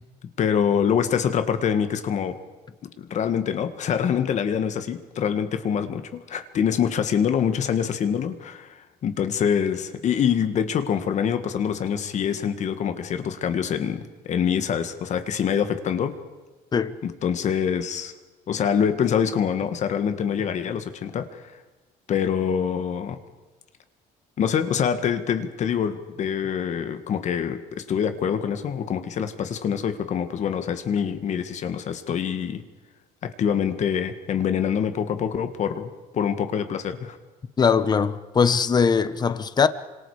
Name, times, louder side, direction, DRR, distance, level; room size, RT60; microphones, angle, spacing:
voice 1, 0.4-2.4 3.0-6.0 6.3-16.1 17.0-18.1 18.5-21.4 22.1-23.2 24.4-32.6 33.2-37.2, left 8 dB, 45° left, 1.8 m, -25 dB
voice 2, 37.6-39.7, left 6 dB, 25° left, 1.1 m, -20 dB
28.0 x 26.0 x 5.0 m
cardioid pair, 145°, 17 cm